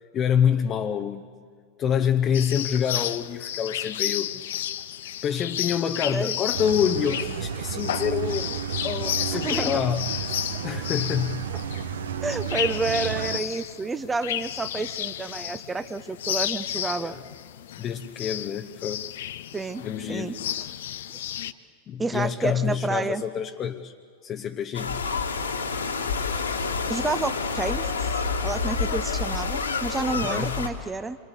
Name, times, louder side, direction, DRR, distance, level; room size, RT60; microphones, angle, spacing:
voice 1, 0.1-1.3 1.8-4.5 5.2-8.5 8.8-10.1 10.6-11.5 17.0-17.2 17.8-19.1 19.8-20.4 21.9-23.9 24.2-25.0 30.1-30.6, left 8 dB, 30° left, 5 dB, 1.0 m, -27 dB
sound 1, 2.3-21.5, left 11 dB, 60° left, 0.8 m, -32 dB
sound 2, 6.5-13.4, right 7 dB, 65° right, 1.1 m, -32 dB
voice 2, 9.3-9.8 12.2-17.2 19.5-19.8 20.1-20.3 21.1-21.3 22.0-23.2 26.9-27.9 28.4-31.2, right 3 dB, 10° right, 12 dB, 0.9 m, -29 dB
sound 3, 24.7-30.7, left 4 dB, 75° left, 2.6 m, -28 dB
28.5 x 25.0 x 8.2 m, 2.1 s
figure-of-eight pair, 90°, 0 cm